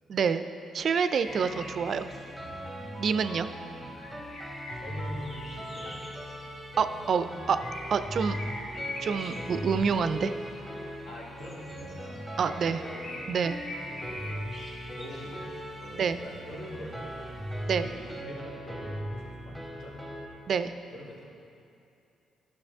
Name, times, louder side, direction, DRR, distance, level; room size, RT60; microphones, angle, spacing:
voice 1, 0.1-0.5 0.7-2.1 2.9-3.5 6.8-7.6 7.9-8.4 9.0-10.3 12.4-12.8 13.3-13.6 16.0-16.2 17.7-17.9 20.5-20.7, right 6 dB, 55° right, 11 dB, 0.3 m, -27 dB
sound 1, 0.8-2.3 3.3-7.2 7.5-10.4 11.4-15.9 17.5-17.9, left 1 dB, 45° left, 1.6 m, -43 dB
sound 2, 1.3-20.3, equal, ahead, 1.3 m, -39 dB
voice 2, 4.7-6.0 9.3-9.5 11.0-12.2 12.5-13.2 13.9-14.4 14.9-17.3 17.8-20.1 20.9-21.3, equal, 70° left, -5 dB, 2.0 m, -44 dB
11.5 x 6.4 x 3.5 m, 2.6 s
cardioid pair, 90°, 0 cm